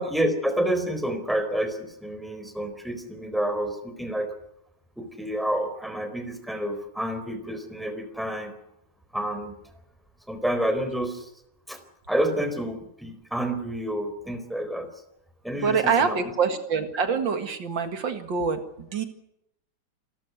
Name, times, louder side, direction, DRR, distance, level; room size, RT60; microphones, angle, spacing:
voice 1, 0.0-4.3 5.0-8.5 9.1-9.6 10.3-11.3 11.7-11.8 12.1-14.9 15.4-16.2, right 1 dB, ahead, 8 dB, 4.1 m, -29 dB
voice 2, 15.6-19.1, right 5 dB, 80° right, 8 dB, 2.6 m, -25 dB
28.5 x 13.5 x 9.5 m, 0.81 s
omnidirectional pair, 2.0 m